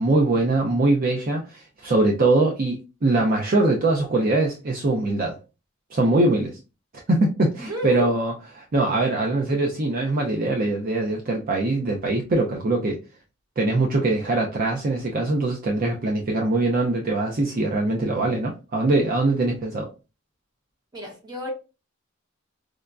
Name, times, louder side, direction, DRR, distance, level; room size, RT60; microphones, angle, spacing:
voice 1, 0.0-5.4 5.9-6.6 7.1-13.0 13.6-19.9, right 2 dB, 45° right, 0.5 m, -22 dB
voice 2, 6.0-6.5 7.7-8.1 20.9-21.5, equal, 20° right, 1.1 m, -32 dB
4.9 x 2.2 x 2.4 m
head